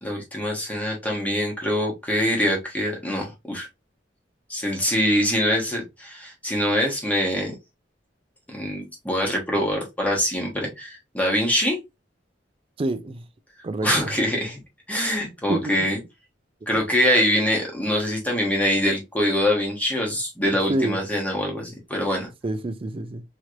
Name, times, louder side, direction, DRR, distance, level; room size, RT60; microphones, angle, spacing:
voice 1, 0.0-3.7 4.5-7.5 8.5-11.8 13.8-14.6 14.9-16.0 16.7-22.3, equal, 10° left, 1.1 m, -24 dB
voice 2, 12.8-13.2 13.6-14.1 15.5-15.9 20.7-21.0 22.4-23.2, right 2 dB, 30° right, 0.4 m, -27 dB
3.0 x 3.0 x 2.5 m
head